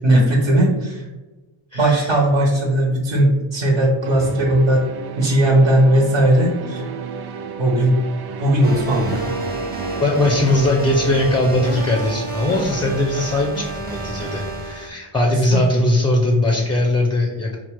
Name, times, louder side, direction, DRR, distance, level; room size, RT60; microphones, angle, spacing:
voice 1, 0.0-1.1 1.7-4.8 5.2-6.8 7.6-8.0 8.4-9.2 15.5-15.6, right 1 dB, 65° right, -3 dB, 1.0 m, -17 dB
voice 2, 1.7-2.2 10.0-17.6, left 1 dB, 10° left, 1 dB, 0.3 m, -20 dB
sound 1, 4.0-10.4, right 5 dB, 50° right, 0.5 m, -33 dB
sound 2, 8.6-14.9, right 2 dB, 20° right, 0.7 m, -29 dB
4.2 x 2.1 x 4.5 m, 1.1 s
wide cardioid pair, 130°, 49 cm